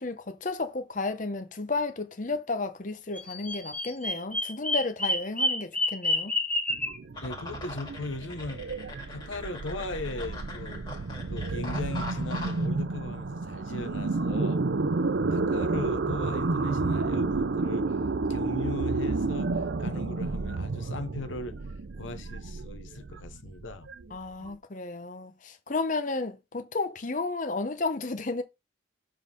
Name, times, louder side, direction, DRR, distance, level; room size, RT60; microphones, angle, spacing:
voice 1, 0.0-6.3 24.1-28.4, left 3 dB, 40° left, 0.8 m, -32 dB
Bird vocalization bird call bird song, 3.1-7.0, left 1 dB, 5° left, 0.8 m, -29 dB
sound 1, 6.7-24.5, right 3 dB, 70° right, 0.6 m, -31 dB
sound 2, 7.1-12.7, left 2 dB, 25° left, 2.2 m, -42 dB
voice 2, 7.2-8.7 9.1-10.9 11.3-14.6 15.3-18.0 18.3-21.6 21.9-23.9, left 2 dB, 90° left, 0.9 m, -38 dB
7.2 x 3.9 x 5.2 m
head